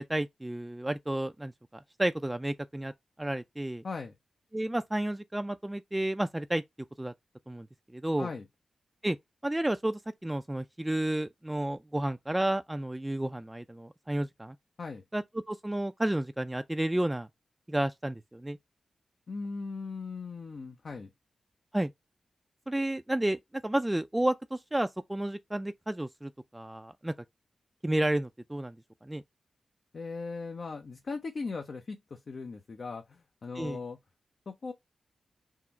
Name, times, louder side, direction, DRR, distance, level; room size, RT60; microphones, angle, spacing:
voice 1, 0.0-1.5 2.0-2.9 3.2-3.8 4.5-6.6 7.0-7.1 7.5-7.7 7.9-8.3 9.0-9.2 9.4-14.6 15.1-17.3 17.7-18.6 21.7-21.9 22.7-27.1 27.8-28.8 29.0-29.2 33.6-33.8, right 1 dB, 15° right, 0.3 m, -31 dB
voice 2, 19.3-21.1 29.9-34.0 34.5-34.7, left 4 dB, 65° left, 0.5 m, -38 dB
3.7 x 2.0 x 4.3 m
cardioid pair, 45°, 0 cm